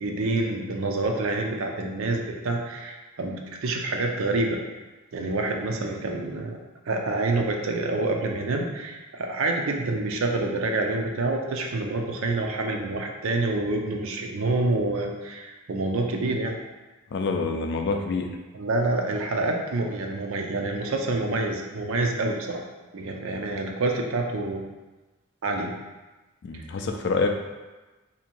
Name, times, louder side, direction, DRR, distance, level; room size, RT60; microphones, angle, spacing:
voice 1, 0.0-4.6 5.1-6.6 6.9-16.6 18.5-22.6 22.9-24.6 25.4-25.7 26.5-26.6, right 2 dB, 60° right, 2 dB, 0.5 m, -27 dB
voice 2, 17.1-18.3 26.4-27.3, left 4 dB, 50° left, 4 dB, 0.3 m, -26 dB
2.8 x 2.6 x 4.3 m, 1.2 s
head